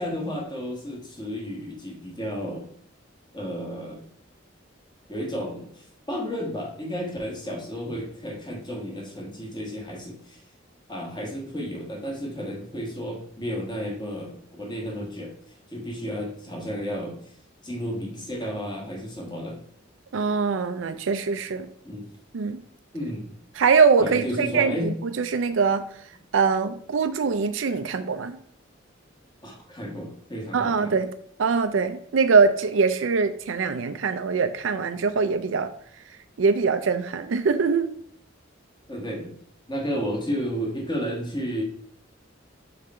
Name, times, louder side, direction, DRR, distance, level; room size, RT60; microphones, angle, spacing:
voice 1, 0.0-2.7 3.3-4.0 5.1-10.4 10.9-15.3 15.7-17.3 17.6-19.6 21.8-22.1 22.9-23.4 24.0-25.2 29.4-31.0 38.9-39.4 39.7-41.6, equal, 25° left, -1 dB, 1.6 m, -32 dB
voice 2, 20.1-21.7 22.3-22.6 23.6-25.8 26.3-28.4 30.5-31.1 31.4-35.7 36.4-37.9, right 5 dB, 90° right, 9 dB, 0.5 m, -23 dB
5.2 x 4.8 x 4.3 m, 0.64 s
head